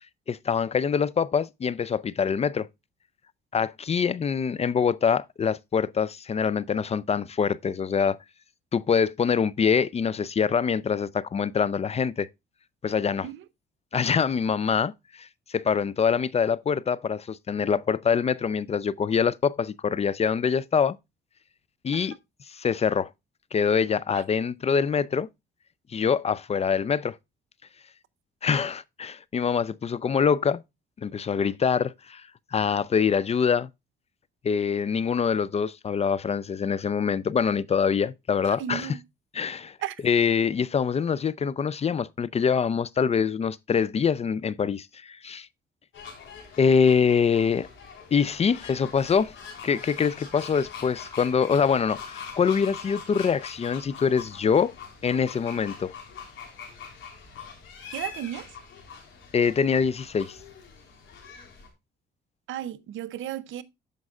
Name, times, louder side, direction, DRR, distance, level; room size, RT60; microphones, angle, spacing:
voice 1, 0.3-2.7 3.5-8.2 8.7-12.3 12.8-13.3 13.9-21.0 21.8-22.1 22.5-23.1 23.5-25.3 25.9-27.2 28.4-30.6 31.0-32.2 32.5-33.7 34.4-39.0 39.3-39.8 40.0-45.5 46.6-47.7 48.1-49.3 49.6-54.7 55.0-55.9 59.3-60.4, left 6 dB, 30° left, 0.4 m, -24 dB
voice 2, 38.6-39.0 39.8-40.0 57.9-58.5 62.5-63.6, right 12 dB, 80° right, 0.7 m, -34 dB
sound 1, 45.9-61.7, left 6 dB, 75° left, 3.1 m, -43 dB
14.0 x 5.3 x 2.3 m
cardioid pair, 90°, 20 cm